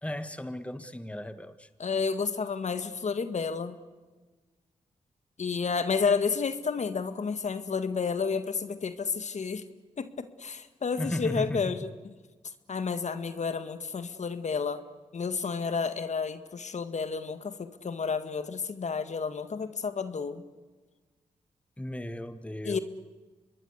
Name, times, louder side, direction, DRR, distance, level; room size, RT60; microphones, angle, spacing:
voice 1, 0.0-1.7 11.0-11.9 21.8-22.8, left 1 dB, 10° left, 11 dB, 1.6 m, -35 dB
voice 2, 1.8-3.8 5.4-9.6 10.0-11.9 12.7-14.8 15.1-20.4 22.6-22.8, left 5 dB, 60° left, 11 dB, 1.8 m, -31 dB
26.0 x 21.5 x 8.2 m, 1.3 s
cardioid pair, 55°, 14 cm